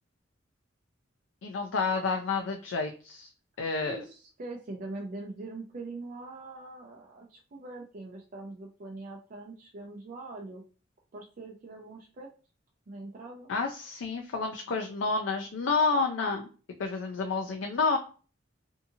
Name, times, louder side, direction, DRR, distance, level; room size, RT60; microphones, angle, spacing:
voice 1, 1.4-3.3 3.6-4.0 13.5-16.4 16.8-18.0, left 4 dB, 80° left, 3 dB, 0.4 m, -29 dB
voice 2, 3.8-10.6 11.1-12.3 12.9-13.5, right 2 dB, 45° right, 0 dB, 0.4 m, -42 dB
2.7 x 2.4 x 2.6 m, 0.37 s
head